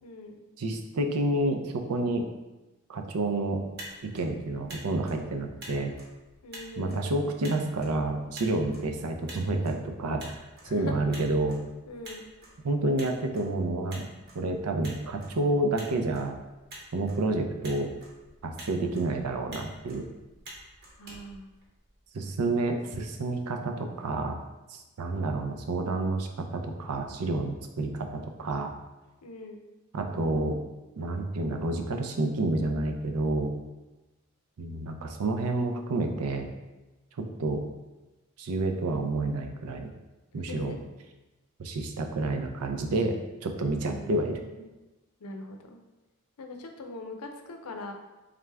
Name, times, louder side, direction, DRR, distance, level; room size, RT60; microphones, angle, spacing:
voice 1, 0.0-0.4 6.4-7.4 10.6-11.3 11.9-12.3 21.0-21.5 29.2-29.6 40.4-40.8 43.8-44.7 45.2-45.8 46.4-47.9, left 2 dB, 85° left, 4 dB, 0.6 m, -42 dB
voice 2, 0.6-2.3 2.9-3.6 4.0-5.9 6.8-10.2 10.6-11.6 12.6-14.1 14.3-16.4 16.9-17.9 18.4-20.0 22.1-24.3 24.7-28.7 29.9-30.6 31.0-33.5 34.6-36.5 37.2-37.6 38.4-39.9 40.3-40.7 41.6-43.2 43.4-44.4, right 2 dB, 85° right, 5 dB, 0.5 m, -29 dB
Motor vehicle (road), 3.6-22.1, right 1 dB, 45° right, 0.9 m, -49 dB
3.7 x 3.3 x 3.4 m, 1.1 s
head